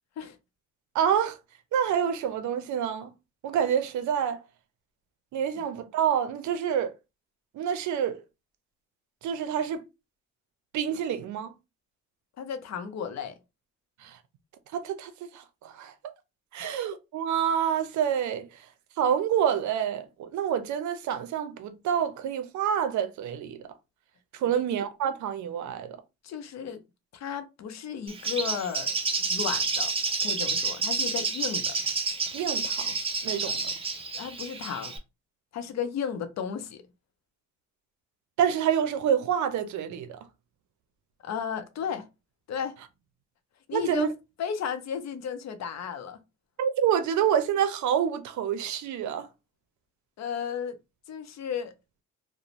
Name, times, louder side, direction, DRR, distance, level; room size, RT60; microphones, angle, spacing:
voice 1, 0.9-1.4 1.7-3.1 3.4-4.4 5.3-6.9 7.5-8.2 9.2-9.8 10.7-11.5 14.0-14.2 14.7-15.9 16.5-18.5 19.0-23.6 24.3-26.0 32.3-32.9 33.2-33.7 38.4-40.2 43.7-44.1 46.6-49.3, right 9 dB, 70° right, 0.5 m, -27 dB
voice 2, 12.4-13.3 16.6-16.8 24.5-24.6 26.2-26.8 27.1-28.9 29.2-29.9 30.2-31.8 33.5-33.6 34.1-34.9 35.5-36.8 41.2-42.1 42.5-42.7 43.7-44.1 44.4-46.2 50.2-50.8 51.1-51.7, left 7 dB, 60° left, 0.6 m, -34 dB
Bird, 28.1-35.0, right 4 dB, 20° right, 0.6 m, -29 dB
2.5 x 2.0 x 2.9 m
cardioid pair, 90°, 30 cm